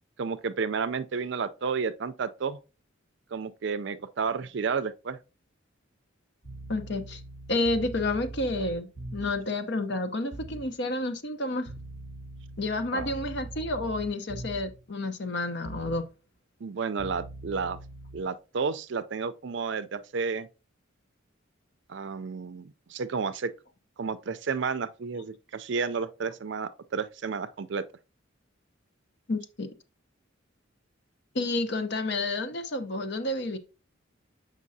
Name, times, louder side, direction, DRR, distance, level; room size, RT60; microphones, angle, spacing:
voice 1, 0.2-2.6 3.3-5.2 12.9-13.1 16.6-17.8 18.1-20.5 21.9-23.5 24.0-27.8, right 5 dB, 60° right, 0.4 m, -31 dB
sound 1, 6.4-9.5 10.3-10.7 11.7-14.8 15.6-16.0 17.0-18.2, right 2 dB, 75° left, 2.1 m, -42 dB
voice 2, 6.7-7.2 7.5-11.7 12.6-16.0 29.3-29.7 31.3-33.6, left 2 dB, 55° left, 0.8 m, -30 dB
7.4 x 5.3 x 2.7 m
head